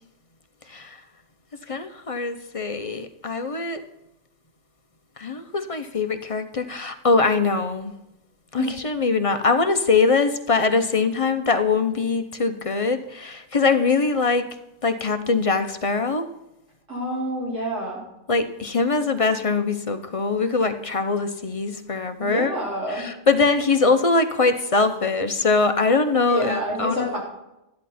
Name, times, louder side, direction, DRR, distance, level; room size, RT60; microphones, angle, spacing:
voice 1, 1.7-3.8 5.2-7.9 8.5-14.6 14.8-16.3 18.3-22.5 23.0-27.1, left 4 dB, 35° left, 8 dB, 0.7 m, -22 dB
voice 2, 16.9-18.0 22.2-23.1 26.3-27.2, right 1 dB, 85° right, -5 dB, 5.0 m, -28 dB
12.5 x 10.5 x 4.2 m, 0.90 s
omnidirectional pair, 1.2 m